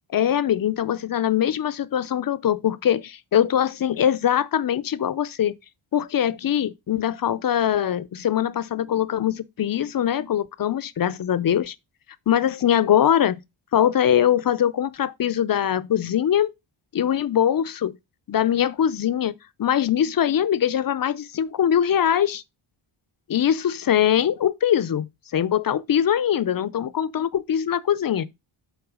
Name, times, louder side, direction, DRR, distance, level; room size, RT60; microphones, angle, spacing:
voice 1, 0.1-5.5 5.9-11.7 12.3-13.4 13.7-16.5 16.9-18.0 18.3-19.3 19.6-22.4 23.3-25.1 25.3-28.3, left 10 dB, 45° left, 0.6 m, -22 dB
8.0 x 4.5 x 4.8 m
wide cardioid pair, 150°, 50 cm